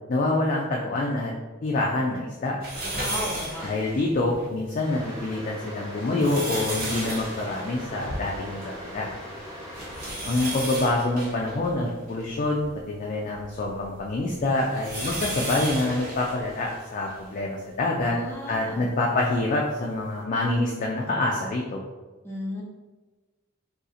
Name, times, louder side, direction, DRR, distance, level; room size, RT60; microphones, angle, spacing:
voice 1, 0.1-1.3 1.6-2.6 3.6-9.1 10.2-18.2 18.5-21.8, left 2 dB, 40° left, -2 dB, 0.3 m, -26 dB
sound 1, 2.6-4.5 5.0-5.1 5.8-8.8 9.1-9.2 9.7-12.7 13.4-17.3 18.0-18.1 19.4-19.5, right 1 dB, 50° right, 1.0 m, -34 dB
voice 2, 3.0-3.7 18.0-18.9 22.2-22.6, equal, 15° left, -4 dB, 0.7 m, -34 dB
sound 2, 4.8-10.1, equal, 25° right, 1.0 m, -40 dB
2.7 x 2.4 x 3.7 m, 1.3 s
head